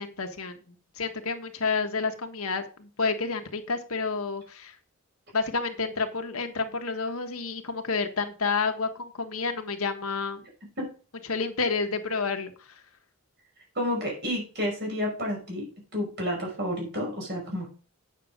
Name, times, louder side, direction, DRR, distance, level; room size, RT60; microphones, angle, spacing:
voice 1, 0.0-4.7 5.3-10.5 11.3-12.5, left 4 dB, 85° left, 6 dB, 1.5 m, -30 dB
voice 2, 13.8-15.7 15.9-17.7, equal, 50° right, 0 dB, 5.4 m, -30 dB
9.0 x 6.7 x 5.1 m, 0.36 s
head